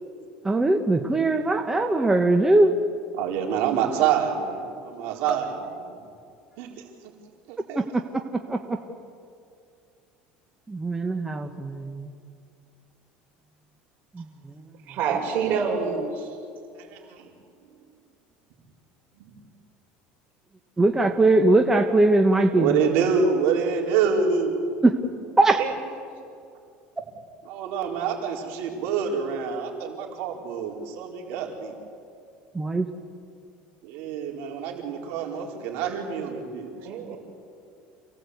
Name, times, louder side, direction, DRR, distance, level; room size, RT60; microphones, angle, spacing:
voice 1, 0.4-2.8 5.3-5.4 7.7-7.8 8.5-8.8 10.7-12.1 14.1-14.6 20.8-22.8 24.8-25.0 25.4-25.6 32.5-32.9, right 2 dB, 10° right, 5 dB, 1.3 m, -21 dB
voice 2, 3.2-6.0 6.6-6.8 7.5-7.8 16.7-17.3 19.2-19.3 22.5-24.6 27.5-31.7 33.8-36.7, right 6 dB, 70° right, 0 dB, 4.5 m, -27 dB
voice 3, 14.9-16.3 25.6-25.7 36.8-37.2, right 6 dB, 55° right, 1 dB, 6.0 m, -26 dB
28.0 x 18.0 x 8.4 m, 2.4 s
cardioid pair, 130°, 4 cm